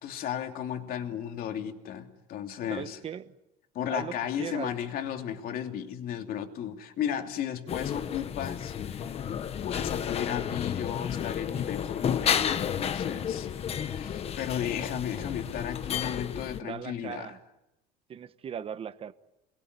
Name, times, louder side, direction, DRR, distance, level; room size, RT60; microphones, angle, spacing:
voice 1, 0.0-3.0 3.7-9.1 9.6-17.4, left 9 dB, 50° left, 3.0 m, -34 dB
voice 2, 2.7-3.3 3.9-4.1 4.4-4.7 16.6-17.4 18.1-19.1, right 8 dB, 30° right, 1.2 m, -38 dB
sound 1, 7.7-16.6, left 8 dB, 30° left, 1.2 m, -32 dB
28.5 x 21.5 x 9.6 m
cardioid pair, 155°, 19 cm